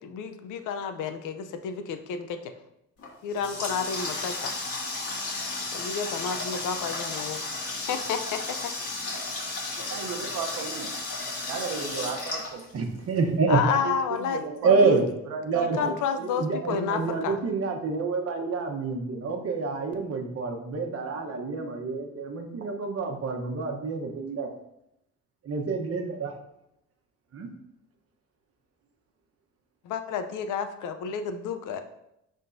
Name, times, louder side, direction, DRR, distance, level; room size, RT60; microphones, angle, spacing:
voice 1, 0.0-2.5 3.2-4.6 5.7-7.4 7.9-8.7 11.7-12.1 13.5-15.1 15.5-17.4 29.8-31.8, left 7 dB, 90° left, 8 dB, 0.7 m, -31 dB
Water tap faucet, 3.0-13.2, left 2 dB, 50° left, 2.2 m, -34 dB
voice 2, 9.9-11.0 11.5-12.6 13.7-15.9, right 6 dB, 85° right, 4 dB, 0.9 m, -34 dB
voice 3, 12.7-13.6 14.6-15.0 15.4-15.9 16.2-24.5 25.4-26.3 27.3-27.5, right 4 dB, 50° right, 3 dB, 1.1 m, -27 dB
11.0 x 3.7 x 2.6 m, 0.83 s
cardioid pair, 90°, 30 cm